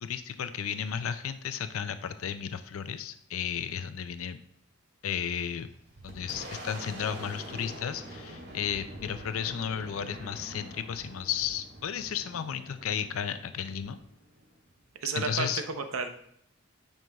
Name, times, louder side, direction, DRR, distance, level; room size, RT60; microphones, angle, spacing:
voice 1, 0.0-4.4 5.0-5.7 6.0-14.0 15.2-15.6, left 8 dB, 80° left, 11 dB, 0.4 m, -34 dB
Boom, 5.4-14.8, right 1 dB, 50° right, 1.8 m, -45 dB
voice 2, 15.0-16.1, right 4 dB, 80° right, 6 dB, 0.8 m, -32 dB
9.1 x 5.5 x 2.3 m, 0.72 s
head